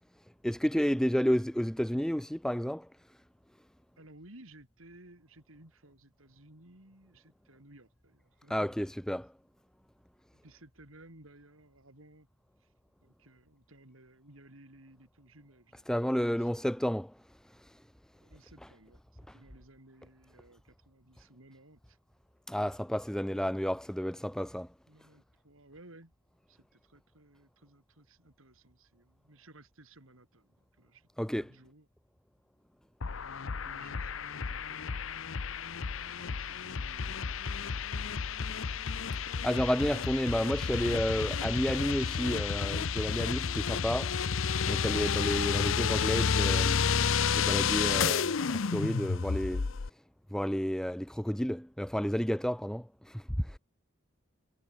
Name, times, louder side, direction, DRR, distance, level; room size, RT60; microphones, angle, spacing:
voice 1, 0.4-2.9 8.5-9.3 15.9-17.2 22.5-24.7 31.2-31.5 39.4-44.2 44.7-46.8 47.2-49.7 50.3-53.6, equal, 5° left, 0.5 m, -31 dB
voice 2, 4.0-8.8 10.3-12.3 12.6-12.7 13.0-16.5 18.1-22.0 24.9-26.1 26.5-31.1 31.3-31.9 33.4-37.9, right 1 dB, 75° right, 4.3 m, -58 dB
sound 1, 33.0-49.9, left 6 dB, 70° left, 0.7 m, -31 dB
sound 2, 37.8-40.3 40.6-42.6 42.9-43.4 43.8-45.8 46.1-46.6 46.9-47.3 47.6-48.9, left 1 dB, 45° left, 7.0 m, -55 dB
head